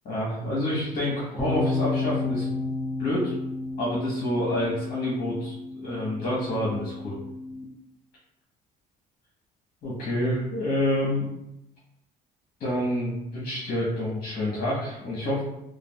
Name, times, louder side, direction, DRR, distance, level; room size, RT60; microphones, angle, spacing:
voice 1, 0.0-2.5 3.0-3.3 3.8-7.2 9.8-11.3 12.6-15.4, left 1 dB, 50° left, -6 dB, 1.0 m, -28 dB
sound 1, 1.4-7.6, left 3 dB, 5° left, 0.6 m, -32 dB
3.1 x 2.3 x 2.3 m, 0.83 s
cardioid pair, 110°, 17 cm